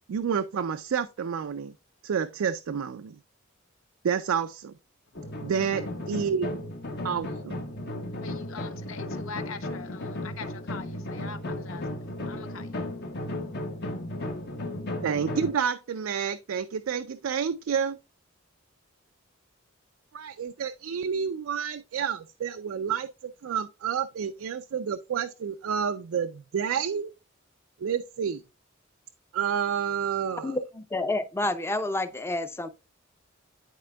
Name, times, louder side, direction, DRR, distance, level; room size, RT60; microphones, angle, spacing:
voice 1, 0.1-1.7 2.0-3.2 4.0-4.7 5.4-6.6 7.0-7.6 15.0-18.0 20.1-23.1 23.4-27.1 27.8-28.4 29.3-30.6, right 7 dB, 80° right, 0.4 m, -29 dB
voice 2, 5.1-5.5 8.2-13.7, left 5 dB, 75° left, 0.7 m, -44 dB
sound 1, 5.1-15.5, left 1 dB, 55° left, 1.0 m, -35 dB
voice 3, 30.4-32.7, left 2 dB, 10° left, 0.5 m, -29 dB
11.0 x 4.2 x 2.2 m
head